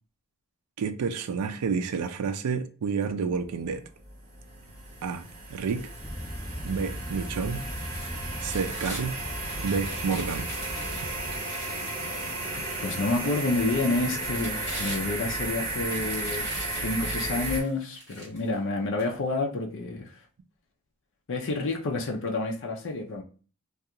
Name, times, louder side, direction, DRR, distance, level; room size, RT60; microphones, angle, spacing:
voice 1, 0.8-3.8 5.0-5.2 5.5-5.9 6.6-7.6 8.4-9.2 9.6-10.5 11.0-11.1, right 5 dB, 90° right, 0.4 m, -29 dB
sound 1, 3.8-17.6, right 2 dB, 40° right, 1.1 m, -34 dB
sound 2, 6.0-11.4, equal, 5° left, 0.7 m, -38 dB
sound 3, 7.7-9.0 9.4-12.8 13.3-13.4 14.1-15.4 15.8-18.5 19.0-19.1, right 1 dB, 15° right, 1.3 m, -42 dB
voice 2, 11.5-11.8 12.5-20.2 21.3-23.2, left 2 dB, 55° left, 0.5 m, -29 dB
2.4 x 2.3 x 2.8 m
head